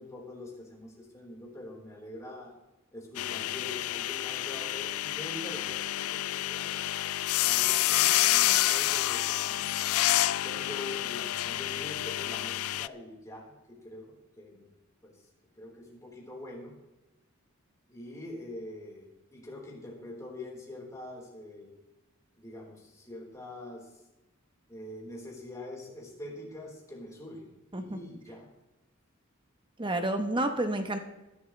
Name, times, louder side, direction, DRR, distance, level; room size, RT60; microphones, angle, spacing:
voice 1, 0.0-2.5 2.9-6.8 7.4-9.6 10.4-14.7 15.0-15.2 15.6-16.7 17.9-21.7 22.4-24.0 24.7-27.5 27.8-28.5, left 1 dB, 15° left, -3 dB, 3.9 m, -44 dB
sound 1, 3.2-12.9, left 15 dB, 80° left, 0.4 m, -28 dB
voice 2, 29.8-31.0, right 1 dB, 20° right, 7 dB, 0.9 m, -29 dB
21.5 x 12.0 x 3.2 m, 1.0 s
head